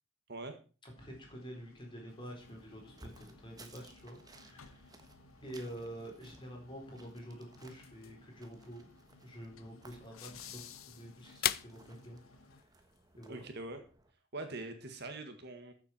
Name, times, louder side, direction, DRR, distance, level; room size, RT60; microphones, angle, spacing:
voice 1, 0.8-4.9 5.4-8.9 9.2-12.2 13.2-13.4, equal, 25° left, 0 dB, 4.3 m, -48 dB
sound 1, 1.0-12.6, left 6 dB, 80° left, 1.1 m, -57 dB
sound 2, 2.1-13.5, left 12 dB, 45° left, 0.4 m, -46 dB
sound 3, 2.4-14.1, right 2 dB, 20° right, 1.3 m, -60 dB
voice 2, 13.3-13.8 14.3-15.7, right 2 dB, 50° right, 6 dB, 1.7 m, -43 dB
14.0 x 7.6 x 4.4 m, 0.36 s
head